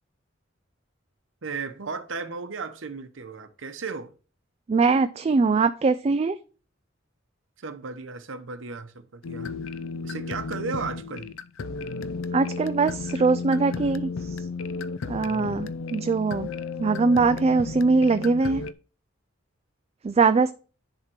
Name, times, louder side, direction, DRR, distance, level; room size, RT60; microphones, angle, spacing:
voice 1, 1.4-4.1 7.6-9.5 10.0-11.3, right 4 dB, 70° right, 0.9 m, -35 dB
voice 2, 4.7-6.4 12.3-14.3 15.1-16.5 16.8-18.6 20.0-20.5, right 4 dB, 30° right, 0.3 m, -22 dB
sound 1, 9.2-18.7, left 4 dB, 85° left, 0.5 m, -33 dB
10.5 x 3.7 x 4.6 m
head